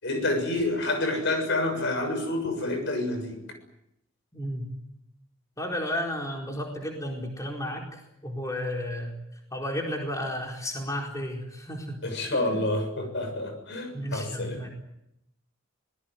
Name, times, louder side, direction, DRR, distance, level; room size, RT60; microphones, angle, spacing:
voice 1, 0.0-3.4 12.0-14.6, left 2 dB, 60° left, 7 dB, 6.8 m, -28 dB
voice 2, 4.3-4.7 5.6-9.1 9.5-12.0 12.3-12.6 13.7-14.7, left 1 dB, 15° left, 0 dB, 4.4 m, -33 dB
25.0 x 20.0 x 9.4 m, 0.81 s
head